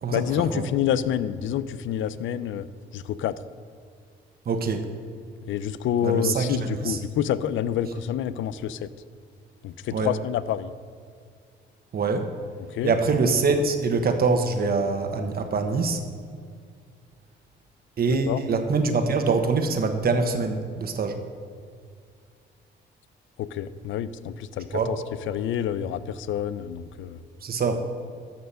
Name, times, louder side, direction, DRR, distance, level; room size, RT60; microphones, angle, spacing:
voice 1, 0.1-2.7 2.9-3.4 5.5-8.9 9.6-10.7 12.6-12.9 18.3-18.4 23.4-25.0 25.3-27.2, left 10 dB, 75° left, 15 dB, 0.6 m, -28 dB
voice 2, 4.4-4.9 6.0-7.0 9.9-10.1 11.9-12.3 12.8-16.0 18.0-21.2 24.7-24.9 27.4-27.8, right 4 dB, 50° right, 6 dB, 1.3 m, -24 dB
13.0 x 6.9 x 5.6 m, 2.1 s
cardioid pair, 90°, 20 cm